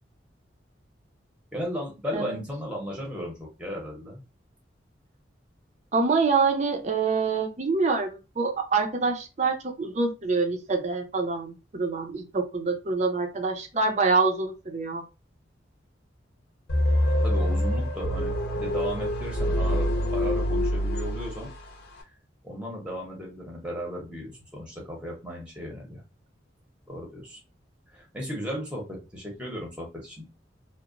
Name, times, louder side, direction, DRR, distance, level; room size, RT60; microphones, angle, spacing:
voice 1, 1.5-4.2 17.2-21.5 22.4-26.0 26.9-27.4 27.9-30.3, equal, 5° right, -1 dB, 0.7 m, -35 dB
voice 2, 5.9-15.0, right 4 dB, 40° right, 5 dB, 0.5 m, -26 dB
sound 1, 16.7-21.7, equal, 60° left, 0.6 m, -25 dB
2.8 x 2.0 x 2.4 m, 0.28 s
head